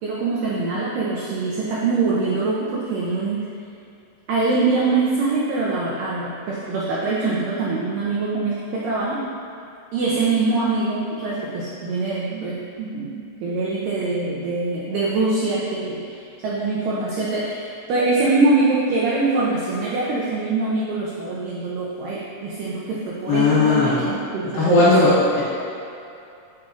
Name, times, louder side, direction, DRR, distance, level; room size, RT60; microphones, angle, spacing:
voice 1, 0.0-3.4 4.3-9.2 9.9-25.0, right 3 dB, 90° right, -5 dB, 1.9 m, -23 dB
voice 2, 23.3-24.1 24.6-25.4, left 2 dB, 55° left, -10 dB, 2.7 m, -17 dB
8.5 x 6.4 x 2.4 m, 2.6 s
omnidirectional pair, 4.9 m